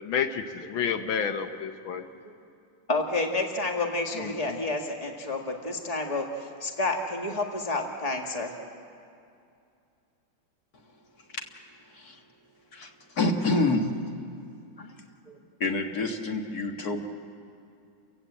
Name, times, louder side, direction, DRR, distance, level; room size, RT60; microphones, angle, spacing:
voice 1, 0.0-2.0 4.2-4.6, left 7 dB, 85° left, 8 dB, 1.7 m, -30 dB
voice 2, 2.9-8.5 14.8-14.9 15.3-15.4, left 2 dB, 20° left, 2 dB, 1.9 m, -30 dB
voice 3, 13.2-13.9 15.6-17.0, left 2 dB, 50° left, 3 dB, 2.2 m, -27 dB
29.5 x 16.0 x 8.2 m, 2.5 s
omnidirectional pair, 2.1 m